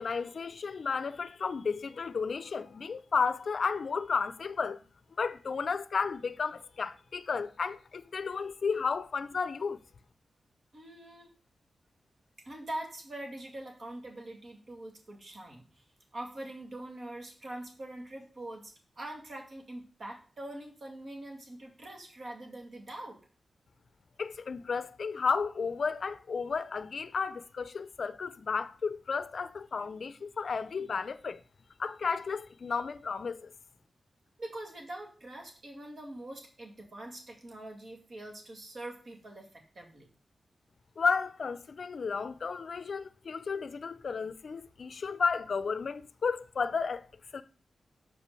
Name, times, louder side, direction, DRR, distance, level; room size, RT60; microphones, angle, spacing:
voice 1, 0.0-4.8 5.2-9.8 24.2-31.4 31.8-33.5 41.0-47.0 47.3-47.4, left 5 dB, 60° left, 0.5 m, -33 dB
voice 2, 10.7-11.3 12.4-15.8 16.1-23.2 34.4-40.1, right 1 dB, 50° right, 2.1 m, -43 dB
5.9 x 5.1 x 6.8 m
wide cardioid pair, 110°, 0 cm